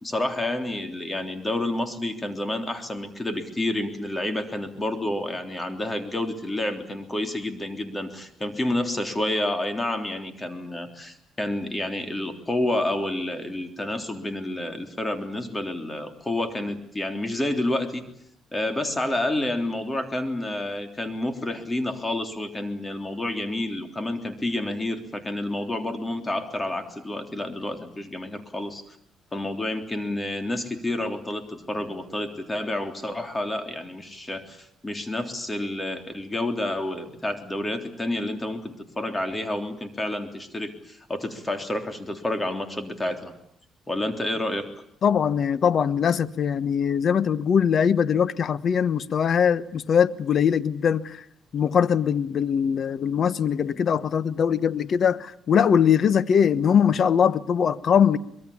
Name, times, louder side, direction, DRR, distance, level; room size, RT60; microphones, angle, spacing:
voice 1, 0.0-18.0 18.5-28.8 29.3-43.3 43.9-44.7, left 1 dB, 20° left, 3.5 m, -29 dB
voice 2, 45.0-51.2 51.5-58.2, left 7 dB, 55° left, 1.2 m, -21 dB
25.0 x 22.0 x 8.5 m
cardioid pair, 90°, 0 cm